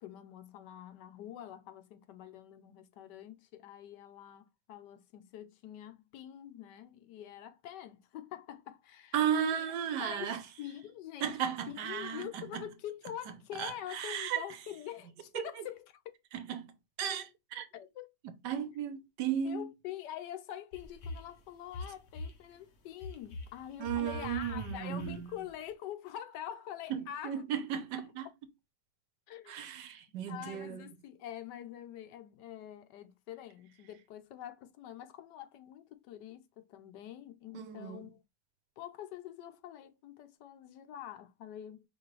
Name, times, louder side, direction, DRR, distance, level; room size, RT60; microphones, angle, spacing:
voice 1, 0.0-9.2 9.5-9.7 10.0-11.4 11.7-16.2 17.7-18.1 19.4-27.4 29.3-29.7 30.3-38.2 38.8-41.9, left 11 dB, 80° left, 1.3 m, -45 dB
voice 2, 9.1-10.4 11.2-12.6 13.6-14.4 15.3-15.6 16.3-16.7 17.0-17.7 18.4-19.7 23.8-25.3 26.9-28.3 29.5-30.9 37.5-38.1, right 9 dB, 80° right, 1.4 m, -35 dB
sound 1, 20.7-21.4 21.7-22.4 23.0-25.5, left 1 dB, 50° left, 1.0 m, -43 dB
4.9 x 3.1 x 3.1 m
omnidirectional pair, 1.8 m